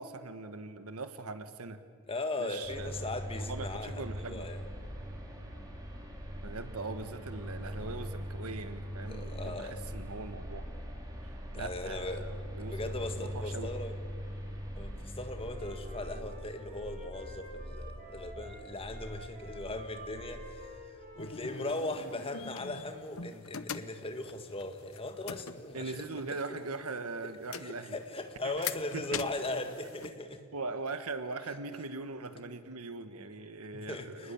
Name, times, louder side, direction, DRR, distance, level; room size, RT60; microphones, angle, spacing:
voice 1, 0.0-1.8 2.4-3.0 3.4-4.5 6.4-10.6 11.2-13.7 25.7-28.0 28.4-29.3 30.5-34.3, right 3 dB, 80° right, 11 dB, 1.4 m, -41 dB
voice 2, 2.1-4.6 9.1-9.8 11.5-12.3 12.6-14.0 14.8-26.2 27.6-30.4 33.2-33.3 33.7-34.3, left 2 dB, 25° left, 7 dB, 1.8 m, -39 dB
sound 1, 2.6-20.6, equal, 15° right, 3.5 m, -42 dB
Wind instrument woodwind instrument, 15.4-22.4, right 1 dB, 40° right, 5.6 m, -50 dB
sound 2, 21.2-26.8 27.2-30.1, left 7 dB, 65° left, 0.9 m, -43 dB
29.0 x 20.0 x 8.7 m, 2.1 s
head